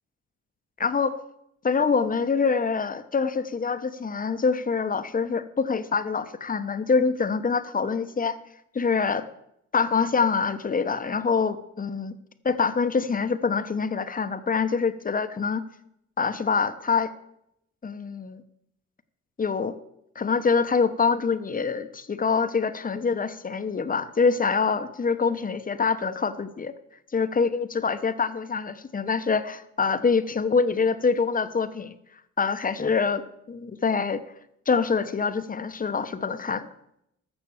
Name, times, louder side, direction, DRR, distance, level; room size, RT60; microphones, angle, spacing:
voice 1, 0.8-1.1 1.6-8.3 8.7-9.3 9.7-12.1 12.4-15.6 16.2-17.1 17.8-18.4 19.4-19.7 20.1-26.7 27.1-31.9 32.4-34.2 34.7-36.7, left 5 dB, 30° left, 11 dB, 1.0 m, -25 dB
14.0 x 6.2 x 7.1 m, 0.78 s
cardioid pair, 90°, 30 cm